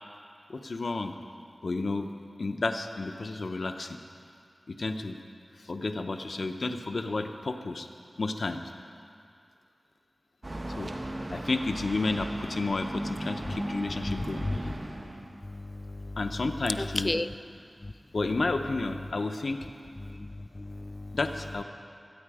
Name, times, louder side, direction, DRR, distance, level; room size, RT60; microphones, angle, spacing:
voice 1, 0.5-1.1 1.6-2.1 2.4-4.0 4.7-5.2 5.6-7.9 8.2-8.6 10.8-10.9 11.3-14.7 16.2-17.1 18.1-19.7 21.1-21.6, left 3 dB, 80° left, 6 dB, 0.8 m, -31 dB
sound 1, 10.4-15.4, right 1 dB, 45° right, 1.2 m, -36 dB
voice 2, 15.4-16.2 16.8-17.3 17.8-17.9 20.0-21.2, left 2 dB, 35° left, 13 dB, 0.4 m, -34 dB
23.0 x 8.5 x 4.9 m, 2.3 s
wide cardioid pair, 50°, 0 cm